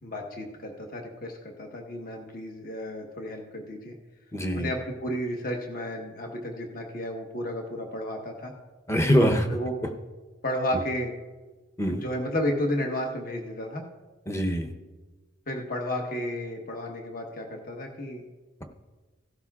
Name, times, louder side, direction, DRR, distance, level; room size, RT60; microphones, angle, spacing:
voice 1, 0.0-3.9 4.5-8.5 9.5-9.7 10.4-11.1 11.9-13.8 15.5-18.2, equal, 45° left, 1 dB, 1.3 m, -32 dB
voice 2, 4.3-4.7 8.9-9.5 11.8-12.0 14.3-14.7, equal, 15° left, 3 dB, 0.8 m, -23 dB
16.0 x 13.0 x 2.4 m, 1.3 s
head